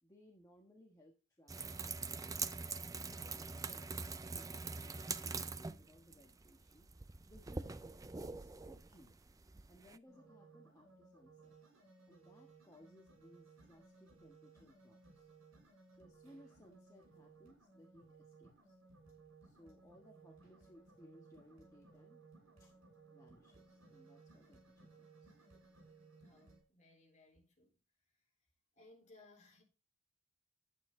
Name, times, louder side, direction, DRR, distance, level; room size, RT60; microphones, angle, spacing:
voice 1, 0.0-1.9 2.9-4.0 4.3-6.9 7.3-9.2 9.7-11.6 12.1-15.3 15.9-18.8 19.4-22.2 22.6-22.7 23.1-25.3, equal, 15° left, 1.4 m, -63 dB
sound 1, 1.5-10.0, right 4 dB, 15° right, 0.4 m, -44 dB
sound 2, 10.1-26.6, right 3 dB, 70° right, 6.3 m, -62 dB
voice 2, 26.2-27.8 28.8-29.6, left 2 dB, 35° left, 3.4 m, -63 dB
11.0 x 9.2 x 3.8 m
head